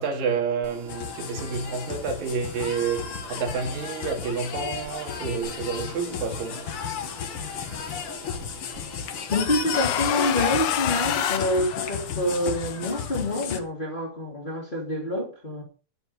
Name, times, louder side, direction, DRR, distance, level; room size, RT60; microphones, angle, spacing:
voice 1, 0.0-6.6, right 5 dB, 80° right, 3.9 m, -29 dB
sound 1, 0.6-9.4, right 5 dB, 50° right, 4.4 m, -45 dB
sound 2, 0.9-13.6, left 8 dB, 60° left, 1.5 m, -33 dB
voice 2, 9.3-15.6, left 1 dB, 15° left, 2.1 m, -27 dB
sound 3, 9.7-12.3, left 11 dB, 80° left, 2.6 m, -28 dB
10.5 x 9.5 x 5.3 m
omnidirectional pair, 3.9 m